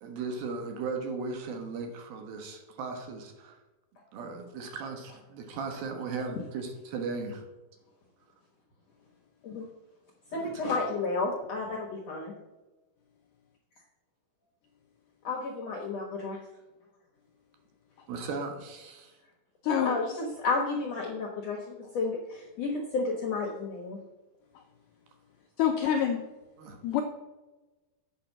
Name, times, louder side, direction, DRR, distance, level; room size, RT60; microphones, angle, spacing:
voice 1, 0.0-3.6 4.1-7.4 10.3-10.8 18.1-19.2 26.6-26.8, right 4 dB, 70° right, 4 dB, 3.0 m, -37 dB
voice 2, 10.3-12.3 15.2-16.4 19.8-24.0, left 3 dB, 65° left, -1 dB, 1.6 m, -32 dB
voice 3, 19.6-20.0 25.6-26.2 26.8-27.0, left 9 dB, 85° left, 3 dB, 1.9 m, -26 dB
8.7 x 5.3 x 7.3 m, 1.1 s
omnidirectional pair, 4.6 m